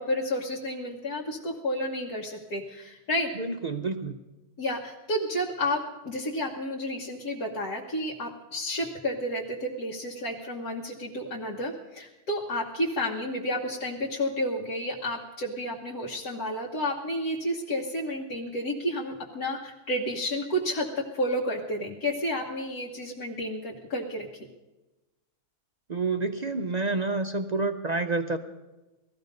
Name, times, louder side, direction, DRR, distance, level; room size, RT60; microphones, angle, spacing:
voice 1, 0.0-3.3 4.6-24.5, equal, 85° left, -3 dB, 1.9 m, -31 dB
voice 2, 3.4-4.2 25.9-28.4, right 3 dB, 60° right, 6 dB, 0.4 m, -28 dB
18.0 x 14.5 x 5.3 m, 1.1 s
omnidirectional pair, 1.6 m